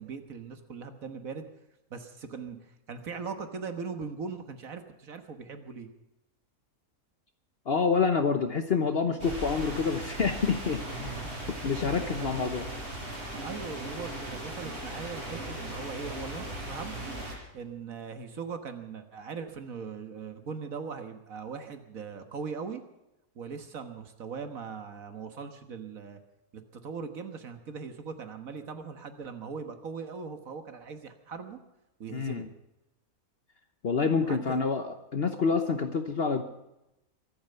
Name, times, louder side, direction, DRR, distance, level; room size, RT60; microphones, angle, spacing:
voice 1, 0.0-1.5 1.9-5.9 11.2-11.3 12.0-12.3 13.3-17.1 17.5-22.8 23.4-26.2 26.5-31.6 32.0-32.5 34.3-34.6, right 5 dB, 70° right, 8 dB, 1.8 m, -40 dB
voice 2, 7.7-11.1 11.6-12.7 32.1-32.5 33.8-36.4, left 5 dB, 45° left, 8 dB, 1.1 m, -27 dB
sound 1, 9.2-17.3, right 1 dB, 45° right, 5.2 m, -38 dB
23.5 x 8.8 x 6.8 m, 0.91 s
omnidirectional pair, 1.5 m